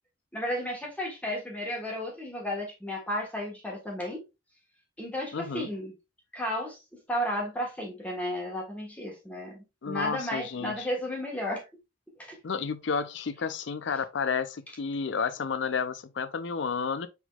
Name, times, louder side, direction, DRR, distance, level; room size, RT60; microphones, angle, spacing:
voice 1, 0.3-4.2 5.0-5.9 6.3-6.8 7.1-11.6 12.2-12.4, equal, 10° left, 1.4 m, -33 dB
voice 2, 5.3-5.7 9.8-10.9 12.4-17.1, left 5 dB, 65° left, 0.5 m, -31 dB
6.2 x 3.5 x 2.4 m
head